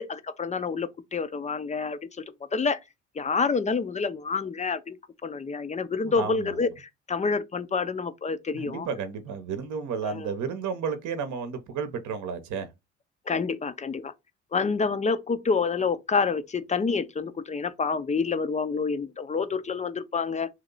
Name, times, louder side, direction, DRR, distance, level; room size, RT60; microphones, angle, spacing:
voice 1, 0.0-2.2 2.5-2.8 3.2-8.9 10.0-10.3 13.3-14.1 14.5-20.5, left 4 dB, 20° left, 0.5 m, -28 dB
voice 2, 6.0-6.6 8.5-12.7, right 6 dB, 55° right, 0.8 m, -32 dB
3.1 x 2.8 x 3.9 m
hypercardioid pair, 55°, 35 cm